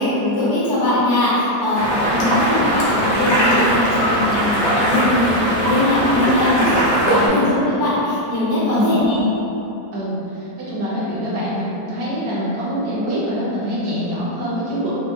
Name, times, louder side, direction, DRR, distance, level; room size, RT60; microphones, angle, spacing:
voice 1, 0.0-9.2, left 1 dB, 45° left, -11 dB, 1.2 m, -20 dB
sound 1, 1.7-7.3, equal, 70° left, 1.3 m, -19 dB
voice 2, 9.9-14.9, equal, 60° right, -9 dB, 1.3 m, -25 dB
4.4 x 2.0 x 2.9 m, 3.0 s
omnidirectional pair, 2.0 m